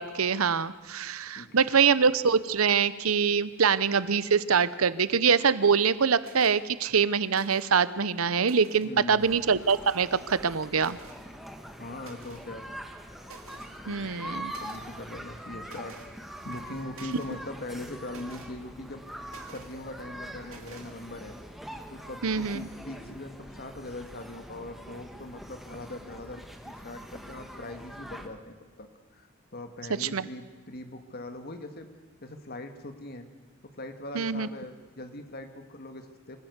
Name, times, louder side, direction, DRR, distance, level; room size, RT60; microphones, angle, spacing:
voice 1, 0.0-11.0 13.9-14.5 22.2-22.6 30.0-30.2 34.1-34.5, right 6 dB, 90° right, 16 dB, 0.8 m, -24 dB
voice 2, 1.4-1.9 8.8-9.3 11.8-12.7 13.7-16.0 16.4-21.4 21.9-31.9 32.2-33.3 33.6-36.4, left 1 dB, 50° left, 7 dB, 2.0 m, -41 dB
sound 1, 6.2-6.6 7.3-7.8 8.3-8.9 9.6-10.1 10.8-11.2 12.0-12.5 12.9-13.0 13.2-13.7 14.5-14.9 15.6-16.1 16.5-17.4 18.1-18.5 19.3-19.8 20.5-20.9, right 4 dB, 70° right, 2.7 m, -50 dB
sound 2, 9.2-28.3, equal, ahead, 1.6 m, -43 dB
25.5 x 15.0 x 8.1 m, 1.4 s
head